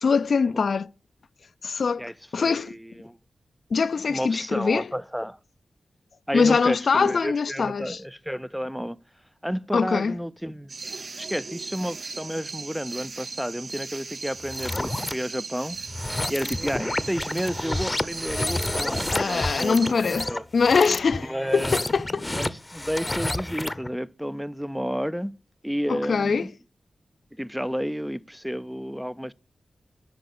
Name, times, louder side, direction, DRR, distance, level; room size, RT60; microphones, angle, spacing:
voice 1, 0.0-0.9 1.6-2.8 3.7-4.9 6.3-8.0 9.7-10.1 19.1-22.2 25.9-26.5, left 5 dB, 75° left, 0.4 m, -23 dB
voice 2, 2.0-3.2 4.1-5.4 6.3-9.0 9.4-15.8 16.3-20.0 20.3-20.5 21.2-21.8 22.4-25.3 25.6-26.5 27.3-29.3, equal, 5° right, 0.4 m, -31 dB
sound 1, 10.7-19.9, right 4 dB, 65° right, 0.6 m, -38 dB
sound 2, 14.4-15.1 15.8-23.9, left 2 dB, 25° left, 0.7 m, -30 dB
7.8 x 5.3 x 6.6 m
cardioid pair, 45°, 0 cm